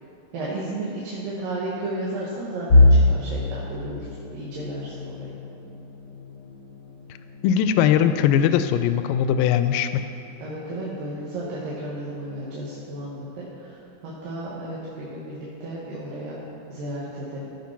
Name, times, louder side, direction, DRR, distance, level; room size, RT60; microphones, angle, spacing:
voice 1, 0.3-4.1 4.3-5.3 10.4-13.8 14.0-16.4 16.7-17.5, right 1 dB, 80° right, -7 dB, 3.2 m, -33 dB
sound 1, 2.7-14.5 15.0-15.2 15.6-15.8 16.6-17.1, left 2 dB, 55° left, 1.2 m, -26 dB
voice 2, 7.4-10.1, left 9 dB, 85° left, 10 dB, 2.3 m, -20 dB
16.0 x 5.6 x 5.9 m, 2.7 s
omnidirectional pair, 4.0 m